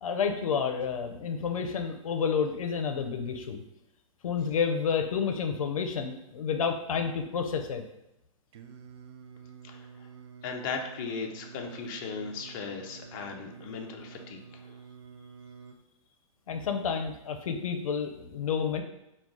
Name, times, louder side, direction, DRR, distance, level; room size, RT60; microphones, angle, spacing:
voice 1, 0.0-3.6 4.2-7.8 16.5-18.8, left 6 dB, 90° left, 5 dB, 0.6 m, -30 dB
Singing, 8.5-15.8, right 6 dB, 55° right, 0.5 m, -49 dB
voice 2, 9.6-10.1 10.4-14.8, left 5 dB, 40° left, 2 dB, 0.6 m, -37 dB
4.6 x 2.4 x 3.6 m, 0.85 s
hypercardioid pair, 145°, 17 cm